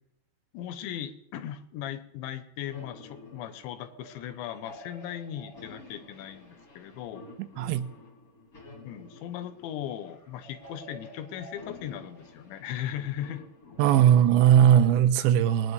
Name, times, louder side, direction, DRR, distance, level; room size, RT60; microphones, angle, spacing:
voice 1, 0.5-7.3 8.8-13.4, left 11 dB, 80° left, 10 dB, 3.1 m, -38 dB
sound 1, 2.7-15.1, left 2 dB, 25° left, 2.2 m, -50 dB
voice 2, 7.6-7.9 13.8-15.7, right 10 dB, 80° right, 11 dB, 2.9 m, -19 dB
22.5 x 9.6 x 3.2 m, 0.77 s
omnidirectional pair, 5.3 m